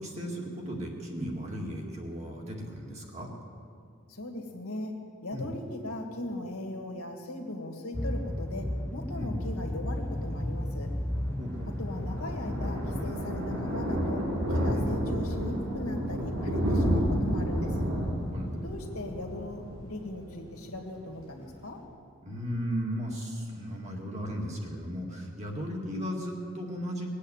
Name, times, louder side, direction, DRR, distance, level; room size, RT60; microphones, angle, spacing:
voice 1, 0.0-3.3 5.3-5.6 9.2-9.4 11.4-11.9 14.7-14.9 18.3-18.6 22.2-27.1, equal, 30° right, -1 dB, 2.1 m, -36 dB
voice 2, 4.1-4.9 5.2-8.7 8.9-10.9 11.8-14.2 14.5-17.9 18.6-21.8, left 1 dB, 80° left, 2 dB, 2.0 m, -38 dB
sound 1, 7.9-13.1, left 1 dB, 10° left, 0.4 m, -33 dB
Thunder, 11.1-20.5 20.8-21.1 21.4-21.5 21.7-21.8, equal, 90° right, 3.8 m, -30 dB
20.5 x 8.4 x 8.1 m, 2.4 s
head